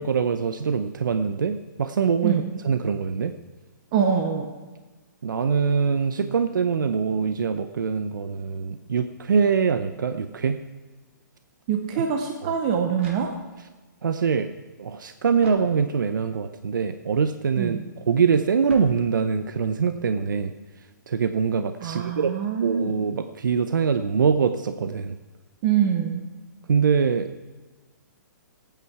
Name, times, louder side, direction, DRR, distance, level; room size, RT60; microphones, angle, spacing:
voice 1, 0.0-3.3 5.2-10.6 12.4-12.5 14.0-14.5 14.8-17.8 18.1-20.5 21.1-22.3 22.6-25.2 26.7-27.4, right 6 dB, 85° right, 9 dB, 0.7 m, -23 dB
voice 2, 3.9-4.5 11.7-13.3 17.6-17.8 21.8-22.9 25.6-26.2, right 7 dB, 20° right, 4 dB, 0.7 m, -24 dB
sound 1, 12.9-13.8 15.4-16.3 18.7-19.6, right 3 dB, 40° right, 2.3 m, -43 dB
18.5 x 9.1 x 4.8 m, 1.3 s
hypercardioid pair, 175°, 10 cm